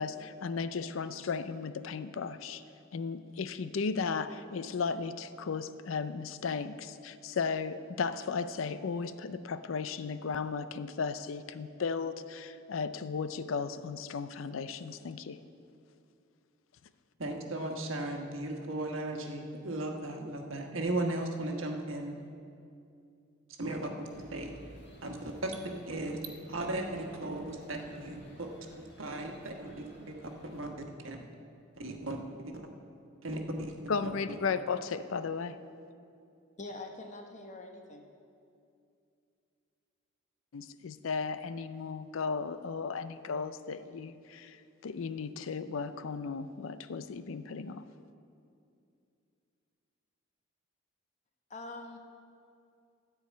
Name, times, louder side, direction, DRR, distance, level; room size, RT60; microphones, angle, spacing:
voice 1, 0.0-2.6 2.9-15.4 33.9-35.6 40.5-47.8, left 5 dB, 80° left, 12 dB, 0.5 m, -35 dB
voice 2, 17.2-22.2 23.5-24.5 25.0-26.2 26.5-28.5 29.0-29.9 30.2-30.8 31.0-31.3 31.7-32.7 33.2-33.7 34.0-34.4, right 1 dB, 80° right, 3 dB, 1.3 m, -36 dB
sound 1, 24.0-30.6, equal, 60° left, 1.9 m, -56 dB
voice 3, 36.6-38.1 51.5-52.0, left 2 dB, 35° left, 4 dB, 1.0 m, -44 dB
13.5 x 4.7 x 8.4 m, 2.5 s
head